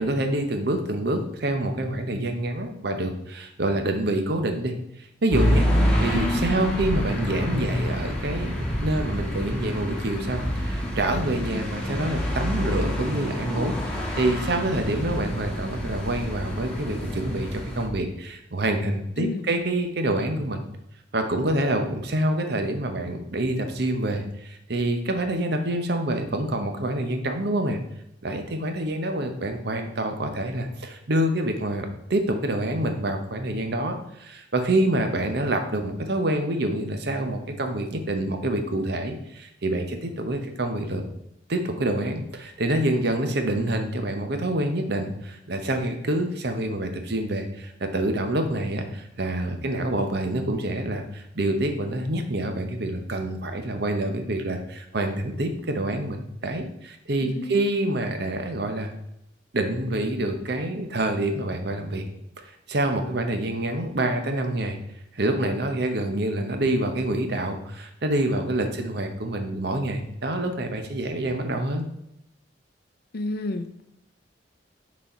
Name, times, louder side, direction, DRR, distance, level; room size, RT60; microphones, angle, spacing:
voice 1, 0.0-4.7 5.0-5.7 6.0-20.6 21.1-27.8 28.2-41.0 41.5-58.9 59.5-62.0 62.4-64.8 65.1-71.9, right 1 dB, 60° right, 6 dB, 0.9 m, -27 dB
sound 1, 5.3-17.9, equal, 5° left, 1.3 m, -27 dB
voice 2, 19.2-19.5 57.2-57.6 73.1-73.7, left 2 dB, 55° left, 9 dB, 0.5 m, -30 dB
6.4 x 4.2 x 4.3 m, 0.80 s
head